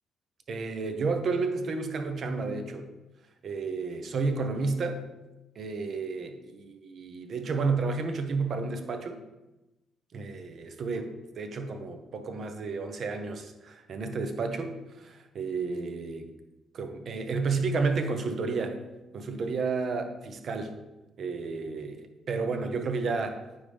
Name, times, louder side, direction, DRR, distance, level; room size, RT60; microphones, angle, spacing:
voice 1, 0.5-2.9 3.4-5.0 5.6-9.2 10.1-16.3 16.7-18.8 19.1-20.7 21.2-23.4, right 4 dB, 55° right, 6 dB, 0.8 m, -31 dB
9.3 x 3.6 x 3.4 m, 1.0 s
cardioid pair, 90°, 0 cm